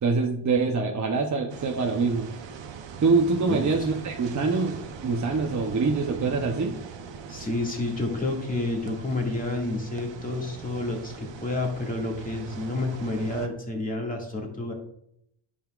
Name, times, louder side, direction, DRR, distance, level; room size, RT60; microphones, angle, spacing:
voice 1, 0.0-2.3 3.0-6.7, right 4 dB, 35° right, 1 dB, 0.9 m, -25 dB
sound 1, 1.5-13.5, right 6 dB, 60° right, 0.9 m, -41 dB
voice 2, 3.4-3.9 7.3-14.7, left 2 dB, 15° left, -1 dB, 2.1 m, -30 dB
10.5 x 5.6 x 2.5 m, 0.73 s
cardioid pair, 110°, 49 cm